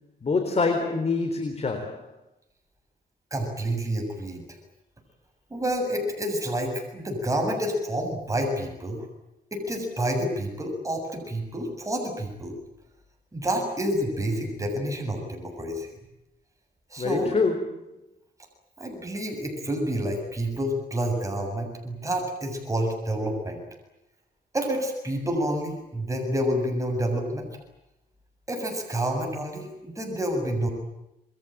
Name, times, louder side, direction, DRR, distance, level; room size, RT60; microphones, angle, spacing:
voice 1, 0.2-2.1 17.0-17.9, left 4 dB, 40° left, 6 dB, 4.0 m, -26 dB
voice 2, 3.3-4.4 5.5-9.1 9.5-12.5 13.3-15.9 16.9-17.4 18.8-23.6 24.5-27.5 28.5-30.7, equal, 20° right, 3 dB, 7.2 m, -28 dB
27.5 x 22.5 x 9.1 m, 0.90 s
cardioid pair, 110°, 17 cm